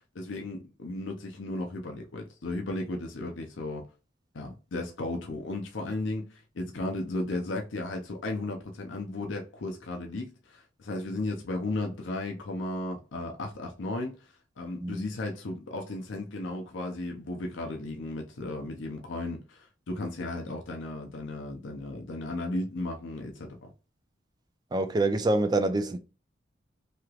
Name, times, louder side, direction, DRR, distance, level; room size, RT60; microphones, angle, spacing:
voice 1, 0.1-3.9 4.3-23.7, left 2 dB, 75° left, 0.6 m, -35 dB
voice 2, 24.7-26.0, right 2 dB, 20° right, 0.4 m, -26 dB
3.1 x 2.9 x 2.3 m
head